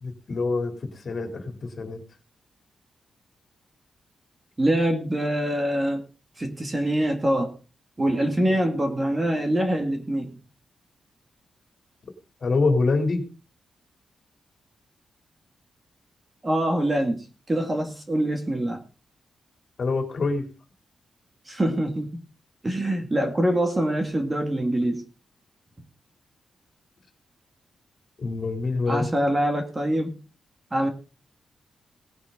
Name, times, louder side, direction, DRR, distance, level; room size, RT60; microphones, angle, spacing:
voice 1, 0.0-0.7 1.0-2.0 8.5-8.6 12.4-13.2 19.8-20.4 28.2-29.1, left 3 dB, 45° left, 5 dB, 3.2 m, -25 dB
voice 2, 4.6-6.0 6.4-7.5 8.0-10.3 16.4-18.8 21.5-22.2 22.6-25.0 28.9-30.2 30.7-30.9, right 1 dB, 20° right, 5 dB, 2.0 m, -24 dB
18.5 x 9.9 x 3.8 m, 0.33 s
wide cardioid pair, 150°, 0 cm